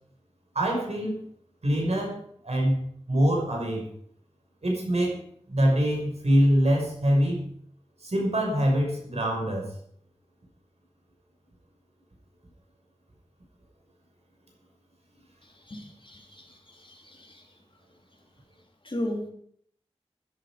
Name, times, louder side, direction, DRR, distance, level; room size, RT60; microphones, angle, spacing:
voice 1, 0.5-1.2 1.6-2.2 2.4-3.9 4.6-5.2 5.5-7.4 8.0-9.7, equal, 75° right, -1 dB, 6.0 m, -24 dB
voice 2, 15.7-17.4 18.8-19.3, left 1 dB, 50° left, 2 dB, 3.4 m, -36 dB
16.5 x 11.0 x 5.2 m, 0.63 s
wide cardioid pair, 50°, 11 cm